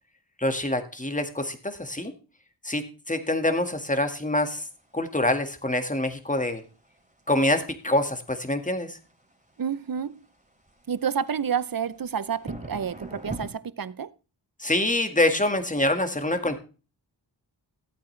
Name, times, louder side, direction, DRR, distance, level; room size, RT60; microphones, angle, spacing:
voice 1, 0.4-2.1 2.6-4.6 4.9-6.6 7.3-9.0 14.6-16.6, left 1 dB, 15° left, 1.8 m, -25 dB
sound 1, 3.8-13.5, right 2 dB, 15° right, 2.9 m, -44 dB
voice 2, 9.6-10.2 10.9-14.1, right 7 dB, 50° right, 0.7 m, -29 dB
15.0 x 8.6 x 3.3 m
wide cardioid pair, 45°, 44 cm